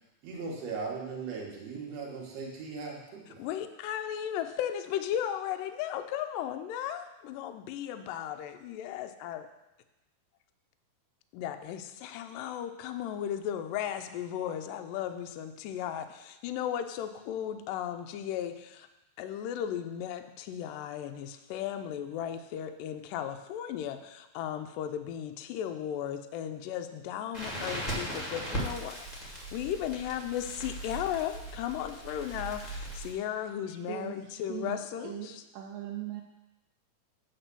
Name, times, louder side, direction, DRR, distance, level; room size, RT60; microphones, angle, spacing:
voice 1, 0.2-3.4, right 4 dB, 55° right, -2 dB, 2.0 m, -38 dB
voice 2, 3.4-9.5 11.3-18.9 19.2-35.4, left 10 dB, 85° left, 7 dB, 1.9 m, -36 dB
Crackle, 27.3-33.1, right 1 dB, 30° left, 0.7 m, -38 dB
voice 3, 33.7-36.2, right 11 dB, 80° right, 1 dB, 2.1 m, -40 dB
8.7 x 4.0 x 6.7 m, 0.98 s
omnidirectional pair, 4.4 m